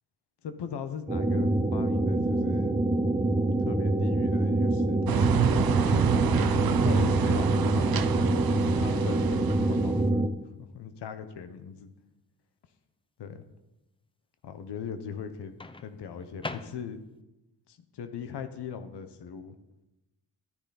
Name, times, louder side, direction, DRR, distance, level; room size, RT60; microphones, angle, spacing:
voice 1, 0.4-2.8 3.6-5.3 5.8-6.1 6.8-10.3 10.6-11.9 13.2-13.4 14.4-17.0 17.7-19.6, left 7 dB, 85° left, 9 dB, 1.0 m, -40 dB
sound 1, 1.1-10.3, right 2 dB, 15° right, 0.8 m, -26 dB
sound 2, 5.1-10.0, right 8 dB, 65° right, 0.7 m, -28 dB
Microwave oven, 6.9-7.6 9.6-9.8 15.6-17.2, left 2 dB, 15° left, 0.6 m, -43 dB
12.0 x 10.0 x 4.1 m, 0.99 s
cardioid pair, 65°, 40 cm